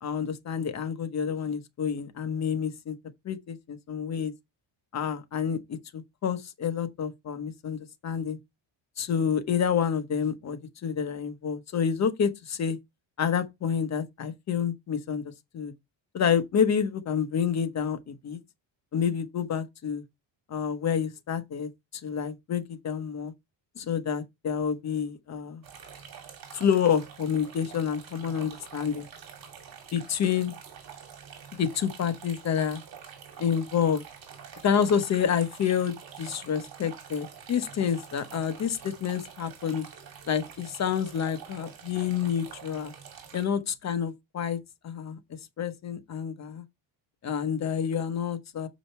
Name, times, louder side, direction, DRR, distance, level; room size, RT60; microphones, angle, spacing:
voice 1, 0.0-2.9 3.2-4.3 4.9-8.4 9.0-12.8 13.2-15.7 16.1-18.4 18.9-20.0 20.5-21.7 22.0-23.3 23.8-25.6 26.5-29.1 29.9-30.5 31.6-32.8 33.4-34.0 34.6-39.8 40.3-42.9 43.3-44.6 44.8-45.2 45.6-46.6 47.2-48.7, left 7 dB, 35° left, 1.0 m, -28 dB
sound 1, 25.6-43.5, right 7 dB, 50° right, 2.5 m, -46 dB
6.9 x 5.1 x 4.3 m
cardioid pair, 180°, 46 cm